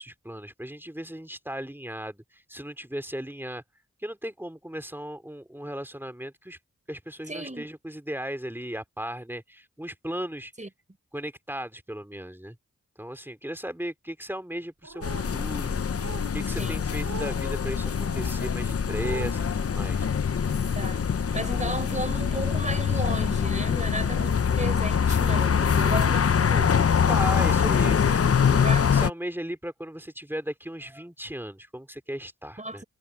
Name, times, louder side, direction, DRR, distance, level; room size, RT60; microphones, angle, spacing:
voice 1, 0.0-3.6 4.0-6.6 6.9-10.5 11.1-12.6 13.0-20.1 27.1-32.8, equal, 5° right, 3.1 m, -36 dB
voice 2, 7.3-7.7 10.6-10.7 16.6-16.9 20.7-21.0 21.3-26.9 28.6-28.9 32.6-32.8, right 2 dB, 25° right, 4.9 m, -34 dB
sound 1, 14.8-15.4 15.9-16.3 16.9-17.5 18.0-18.4 18.9-19.4, right 6 dB, 70° right, 3.9 m, -40 dB
sound 2, 15.0-29.1, left 7 dB, 55° left, 0.7 m, -24 dB
sound 3, 17.6-27.4, left 5 dB, 85° left, 6.3 m, -35 dB
cardioid pair, 45°, 29 cm